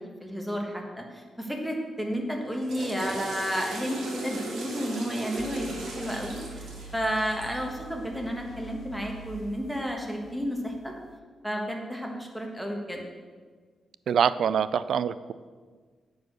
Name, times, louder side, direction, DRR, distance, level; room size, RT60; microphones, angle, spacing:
voice 1, 0.0-10.9 11.4-13.0, equal, ahead, 1 dB, 1.4 m, -32 dB
Water / Toilet flush, 2.4-7.7, right 2 dB, 90° right, 1.9 m, -37 dB
sound 1, 5.4-11.2, right 2 dB, 65° left, 0.5 m, -46 dB
voice 2, 14.1-15.3, right 8 dB, 70° right, 15 dB, 0.3 m, -25 dB
9.1 x 4.8 x 6.6 m, 1.5 s
cardioid pair, 110°, 0 cm